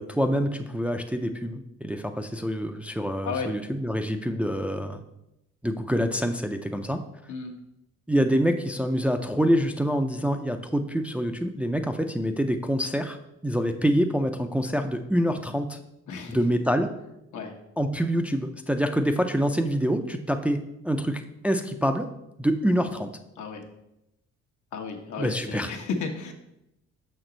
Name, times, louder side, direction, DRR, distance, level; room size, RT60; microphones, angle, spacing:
voice 1, 0.0-5.0 5.6-7.0 8.1-13.2 13.4-15.8 16.3-16.9 17.8-22.1 22.4-23.1 25.2-25.7, equal, 5° right, 5 dB, 0.4 m, -26 dB
voice 2, 24.7-26.3, left 4 dB, 75° left, 4 dB, 1.0 m, -33 dB
6.2 x 5.8 x 3.8 m, 0.86 s
cardioid pair, 90°, 30 cm